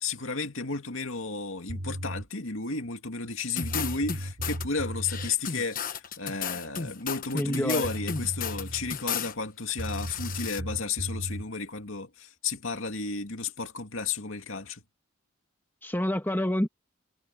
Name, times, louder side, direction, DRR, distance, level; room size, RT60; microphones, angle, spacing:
voice 1, 0.0-14.8, left 4 dB, 65° left, 2.4 m, -33 dB
sound 1, 1.7-2.3 3.3-3.4 3.6-5.3 7.5-7.6 7.8-9.0 9.8-11.5, equal, 75° right, 2.9 m, -36 dB
sound 2, 3.6-4.6 5.0-9.3 9.7-10.6, left 7 dB, 40° left, 1.1 m, -34 dB
voice 2, 7.3-7.9 15.8-16.7, left 1 dB, 10° left, 1.4 m, -27 dB
head